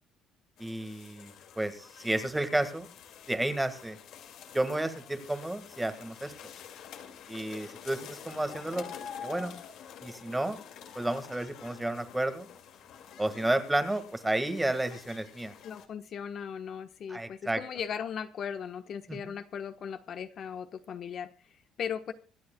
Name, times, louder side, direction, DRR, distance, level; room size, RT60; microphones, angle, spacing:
sound 1, 0.6-15.9, left 8 dB, 60° left, 2.2 m, -48 dB
voice 1, 0.6-2.9 3.3-4.0 4.5-6.3 7.3-8.9 9.2-9.5 10.0-10.6 11.0-12.5 13.2-15.5 17.1-17.6 19.1-19.3, right 1 dB, 10° right, 10 dB, 1.7 m, -31 dB
voice 2, 15.6-22.1, left 7 dB, 45° left, 9 dB, 1.1 m, -38 dB
25.0 x 9.5 x 2.3 m, 0.36 s
cardioid pair, 135°, 0 cm